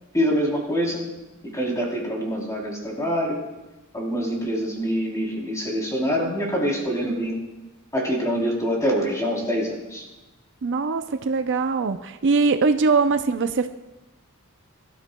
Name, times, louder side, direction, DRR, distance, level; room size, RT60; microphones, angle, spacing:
voice 1, 0.1-1.0 1.4-3.4 3.9-7.4 7.9-10.1, equal, 15° left, -2 dB, 3.4 m, -25 dB
voice 2, 7.0-7.3 10.6-13.7, right 4 dB, 60° right, 9 dB, 0.5 m, -22 dB
23.5 x 12.5 x 2.2 m, 1.1 s
head